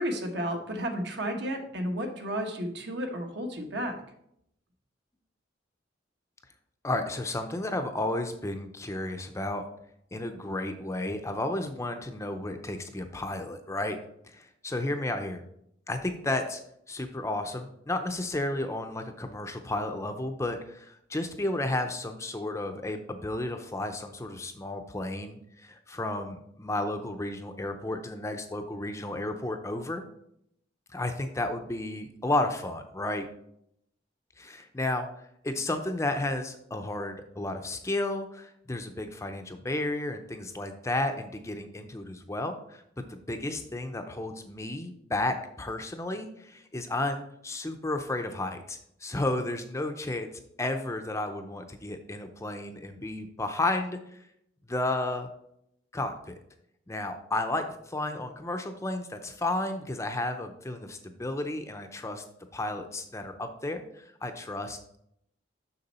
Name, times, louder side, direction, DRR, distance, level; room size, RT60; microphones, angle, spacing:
voice 1, 0.0-4.0, equal, 60° right, 4 dB, 1.2 m, -32 dB
voice 2, 6.8-9.7 10.1-14.0 14.3-15.4 15.9-16.6 16.9-30.0 30.9-33.3 34.4-50.3 50.6-54.3 54.7-55.3 55.9-56.4 56.9-62.2 62.5-65.0, left 2 dB, 15° left, 6 dB, 0.5 m, -32 dB
6.7 x 6.1 x 4.2 m, 0.74 s
head